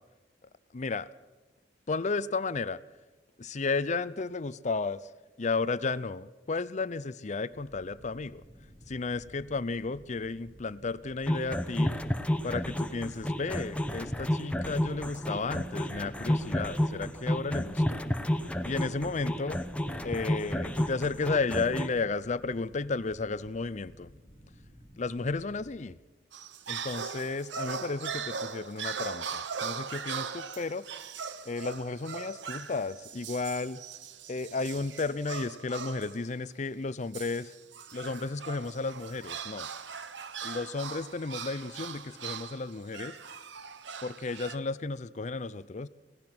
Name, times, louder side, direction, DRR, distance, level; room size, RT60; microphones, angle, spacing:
voice 1, 0.7-1.1 1.9-2.8 3.4-5.1 5.4-8.4 8.9-12.0 12.4-18.0 18.6-19.6 20.0-24.1 25.0-26.0 26.7-30.8 31.5-33.8 34.3-37.5 37.9-39.7 40.4-43.2 44.0-45.9, left 3 dB, 40° left, 17 dB, 0.6 m, -33 dB
sound 1, 7.5-25.8, equal, 20° right, 4.0 m, -54 dB
sound 2, 11.3-21.9, left 1 dB, 5° left, 1.0 m, -31 dB
sound 3, 26.3-36.2 37.1-44.6, right 6 dB, 75° right, 1.0 m, -40 dB
25.0 x 18.0 x 6.0 m, 1.2 s
head